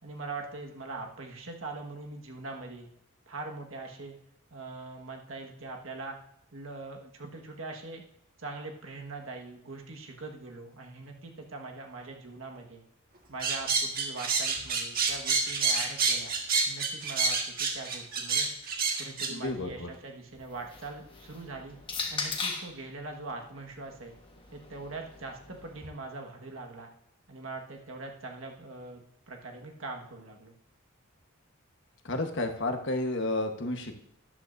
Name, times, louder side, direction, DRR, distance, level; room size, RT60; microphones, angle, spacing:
voice 1, 0.0-2.9 3.3-4.2 4.5-6.2 6.5-8.0 8.4-12.8 13.3-16.3 16.6-18.5 19.0-21.8 22.1-24.1 24.5-26.9 27.3-29.0 29.3-30.6, right 3 dB, 70° right, 2 dB, 1.6 m, -42 dB
sound 1, 13.4-19.3, right 4 dB, 45° right, 1.6 m, -28 dB
voice 2, 19.3-19.9 32.0-33.9, left 2 dB, 55° left, 5 dB, 1.3 m, -31 dB
sound 2, 20.3-22.8 23.8-25.9, left 4 dB, 25° left, 1.3 m, -39 dB
13.0 x 11.5 x 2.7 m, 0.73 s
head